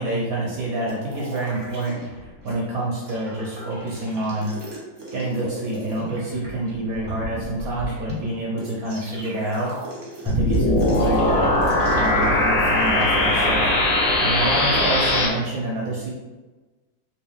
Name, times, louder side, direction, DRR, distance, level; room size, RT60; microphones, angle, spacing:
voice 1, 0.0-2.2 2.4-4.5 5.1-9.8 10.2-11.5 11.9-13.7 14.0-16.1, right 1 dB, 65° right, -4 dB, 0.9 m, -27 dB
sound 1, 0.9-2.5 2.8-15.3, equal, 30° right, 0.8 m, -36 dB
sound 2, 10.3-15.3, left 1 dB, 85° left, 1.8 m, -20 dB
4.4 x 2.7 x 3.5 m, 1.2 s
omnidirectional pair, 2.2 m